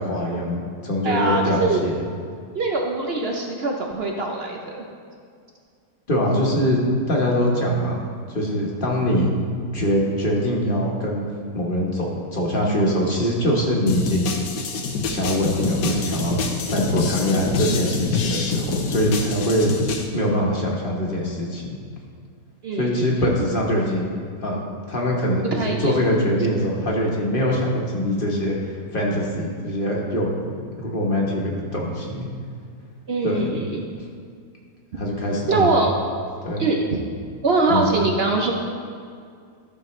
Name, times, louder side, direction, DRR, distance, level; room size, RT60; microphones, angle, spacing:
voice 1, 0.0-1.9 6.1-9.3 9.7-11.3 11.5-14.3 15.1-16.4 16.7-21.8 22.7-24.1 24.4-24.6 24.9-32.3 33.2-33.5 34.9-35.7 36.4-36.6 37.7-37.8, equal, 35° left, -2 dB, 1.3 m, -23 dB
voice 2, 1.0-1.8 2.5-4.8 22.6-23.1 25.5-25.9 33.1-33.8 35.5-35.9 36.6-36.9 37.4-38.5, right 3 dB, 60° right, 1 dB, 0.6 m, -22 dB
sound 1, 13.9-20.1, left 3 dB, 80° left, 1.5 m, -26 dB
14.0 x 6.5 x 3.2 m, 2.2 s
omnidirectional pair, 1.9 m